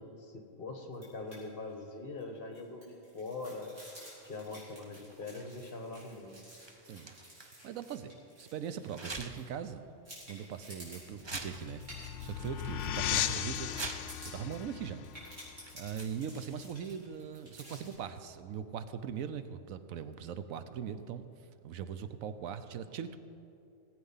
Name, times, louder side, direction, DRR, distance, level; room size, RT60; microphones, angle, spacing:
voice 1, 0.0-3.7 4.2-6.4, left 3 dB, 45° left, 4 dB, 1.5 m, -43 dB
sound 1, 0.9-1.4 1.7-1.8 2.2-9.7 10.0-17.9, equal, 65° right, 4.0 m, -53 dB
sound 2, 4.1-8.0 8.9-9.6 10.0-10.1 10.7-10.8 11.2-12.2 12.6-13.0 13.5-14.3 15.2-15.3 15.6-16.4 17.5-18.0, right 3 dB, 25° right, 0.6 m, -46 dB
voice 2, 7.4-9.9 10.3-13.7 14.3-15.1 15.7-21.2 21.6-23.2, right 8 dB, 85° right, 11 dB, 1.1 m, -40 dB
sound 3, 11.1-16.5, left 11 dB, 70° left, 0.8 m, -37 dB
18.0 x 8.1 x 5.6 m, 2.6 s
omnidirectional pair, 1.4 m